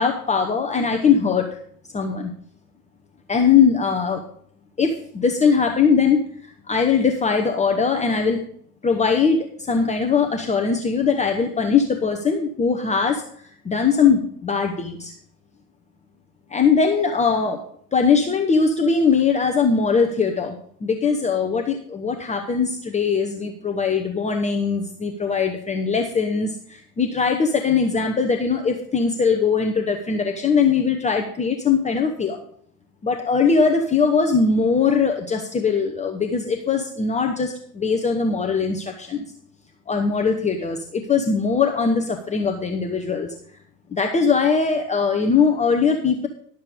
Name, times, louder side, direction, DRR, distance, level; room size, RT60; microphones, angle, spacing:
voice 1, 0.0-1.6 1.9-2.3 3.3-4.2 4.8-8.4 8.8-13.2 13.6-15.1 16.5-17.6 17.9-20.5 20.8-32.4 33.0-39.3 39.9-43.3 43.9-46.3, left 5 dB, 15° left, 3 dB, 0.9 m, -21 dB
12.0 x 6.8 x 5.2 m, 0.63 s
figure-of-eight pair, 85°, 50 cm